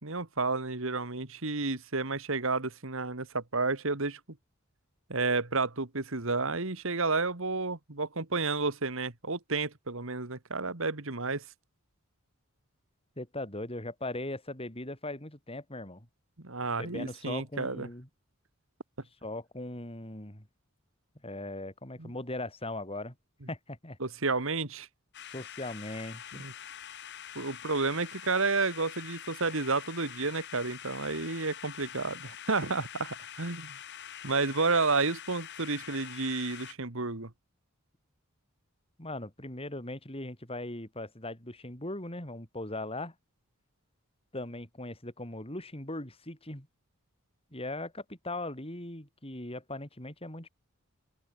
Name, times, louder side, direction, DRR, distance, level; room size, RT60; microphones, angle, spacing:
voice 1, 0.0-4.2 5.1-11.4 16.4-17.9 22.0-22.1 24.0-24.9 26.4-26.5 27.4-33.8 34.2-37.3, right 3 dB, 65° right, 2.0 m, -31 dB
voice 2, 13.2-16.1 16.8-18.1 19.2-20.5 21.2-23.1 23.5-24.0 25.2-26.5 39.0-43.1 44.3-46.7 47.5-50.5, left 2 dB, 25° left, 5.6 m, -39 dB
sound 1, 25.1-36.7, left 10 dB, 55° left, 3.4 m, -45 dB
open air
head